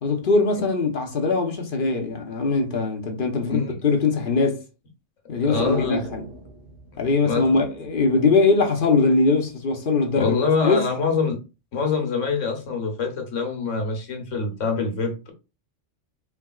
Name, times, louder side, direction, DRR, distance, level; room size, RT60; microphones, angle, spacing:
voice 1, 0.0-4.6 5.3-6.2 7.0-10.8, left 3 dB, 50° left, 1.0 m, -21 dB
voice 2, 5.4-6.0 7.2-7.5 10.1-11.4 11.7-15.3, left 4 dB, 85° left, 1.5 m, -25 dB
sound 1, 5.5-8.0 8.3-8.4, right 1 dB, 75° right, 1.8 m, -36 dB
4.8 x 3.4 x 2.3 m
omnidirectional pair, 1.3 m